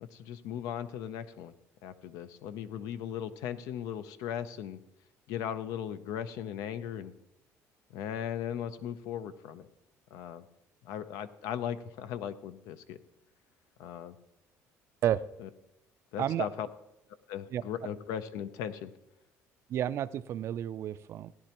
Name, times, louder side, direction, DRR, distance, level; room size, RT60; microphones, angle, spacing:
voice 1, 0.0-1.5 1.8-4.8 5.3-7.1 7.9-9.7 10.1-10.4 10.8-13.0 13.8-14.2 16.1-16.7 17.3-18.9, left 9 dB, 85° left, 12 dB, 0.6 m, -37 dB
voice 2, 19.7-21.3, right 11 dB, 50° right, 16 dB, 0.4 m, -31 dB
16.5 x 10.0 x 3.0 m, 0.91 s
cardioid pair, 140°, 6 cm